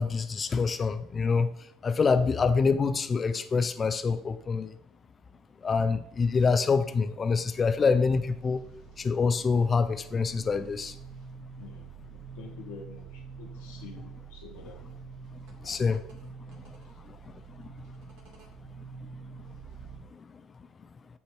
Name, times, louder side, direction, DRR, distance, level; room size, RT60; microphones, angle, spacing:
voice 1, 0.0-1.5 1.8-4.7 5.6-8.6 9.0-10.9 15.6-16.0 17.1-17.2 17.6-17.7, left 5 dB, 35° left, 10 dB, 0.6 m, -26 dB
sound 1, 7.5-20.0, right 6 dB, 60° right, 1.6 m, -47 dB
voice 2, 11.6-15.0 15.6-15.8, left 4 dB, 75° left, 2 dB, 1.3 m, -48 dB
8.7 x 2.9 x 4.7 m, 0.70 s
hypercardioid pair, 65°, 0 cm